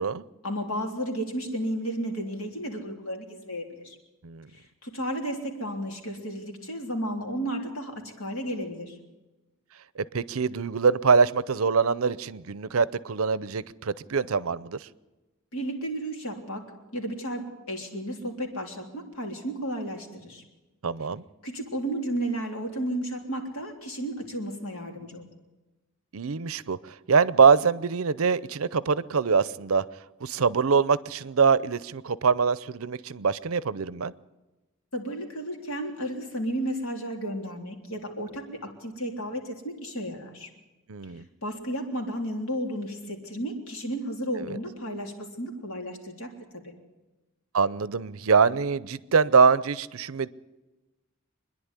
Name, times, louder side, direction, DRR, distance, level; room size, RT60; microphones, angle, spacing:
voice 1, 0.4-4.0 4.5-9.0 15.5-20.4 21.4-25.3 34.9-40.5 41.4-46.7, right 1 dB, 75° left, 2 dB, 3.5 m, -33 dB
voice 2, 10.0-14.9 20.8-21.2 26.1-29.9 30.2-34.1 40.9-41.2 44.4-44.6 47.5-50.3, right 5 dB, 75° right, 18 dB, 0.6 m, -24 dB
25.5 x 10.5 x 9.8 m, 1.1 s
head